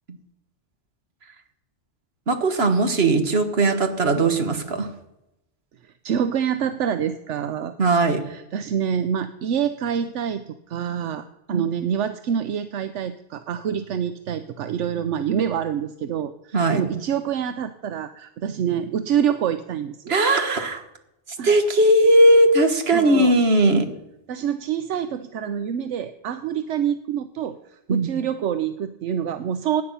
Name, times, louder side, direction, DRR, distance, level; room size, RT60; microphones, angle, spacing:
voice 1, 2.3-4.9 7.8-8.2 11.5-11.6 16.5-16.8 20.1-20.8 21.4-23.9 27.9-28.1, right 1 dB, 55° right, 7 dB, 1.8 m, -18 dB
voice 2, 5.8-7.7 8.3-20.1 21.4-21.5 22.9-23.3 24.3-29.8, right 8 dB, 80° right, 11 dB, 1.0 m, -26 dB
16.5 x 9.7 x 5.6 m, 0.90 s
omnidirectional pair, 1.2 m